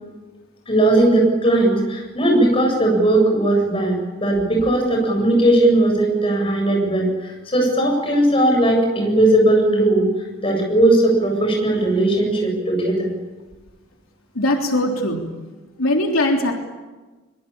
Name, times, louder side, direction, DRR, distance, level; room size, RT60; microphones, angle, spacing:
voice 1, 0.7-10.1 10.4-13.1, right 1 dB, 25° left, 1 dB, 7.9 m, -18 dB
voice 2, 14.3-15.3 15.8-16.5, left 1 dB, 85° left, 1 dB, 3.4 m, -20 dB
24.0 x 23.0 x 8.9 m, 1.2 s
head